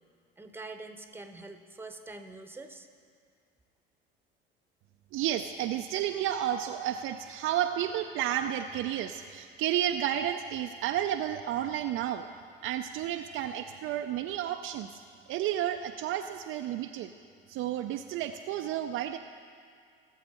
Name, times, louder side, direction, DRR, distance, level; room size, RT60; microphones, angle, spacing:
voice 1, 0.4-2.9, right 3 dB, 5° right, 7 dB, 1.0 m, -45 dB
voice 2, 5.1-12.3 12.6-14.9 15.3-17.1 17.5-19.2, right 11 dB, 45° right, 6 dB, 0.5 m, -31 dB
17.5 x 7.7 x 4.2 m, 2.2 s
figure-of-eight pair, 65°, 29 cm